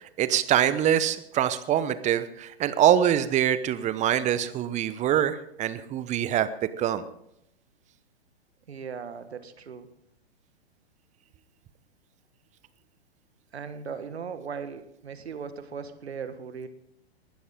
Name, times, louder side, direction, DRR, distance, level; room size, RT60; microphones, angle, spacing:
voice 1, 0.2-6.5 6.8-7.0, right 10 dB, 20° right, 14 dB, 0.9 m, -24 dB
voice 2, 8.7-9.9 13.5-16.7, right 6 dB, 75° right, 11 dB, 1.5 m, -38 dB
20.0 x 11.5 x 3.7 m, 0.75 s
figure-of-eight pair, 110°, 32 cm